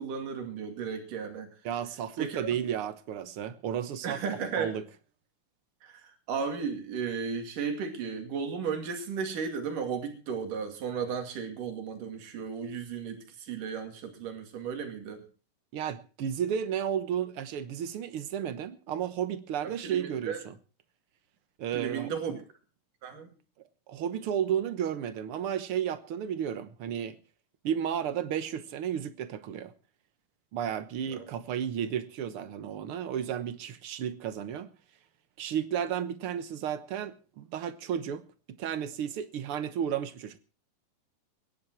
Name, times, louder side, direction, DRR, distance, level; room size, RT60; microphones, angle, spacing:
voice 1, 0.0-1.5 2.2-2.4 4.0-4.7 5.8-15.3 19.6-20.4 21.7-22.3 23.0-23.3 31.1-31.2, right 6 dB, 75° right, 4.0 m, -35 dB
voice 2, 1.6-4.2 4.5-4.8 15.7-20.5 21.6-22.4 23.9-27.2 27.6-29.7 30.5-34.7 35.4-40.4, right 9 dB, 60° right, 1.5 m, -33 dB
22.5 x 10.5 x 4.6 m
omnidirectional pair, 3.8 m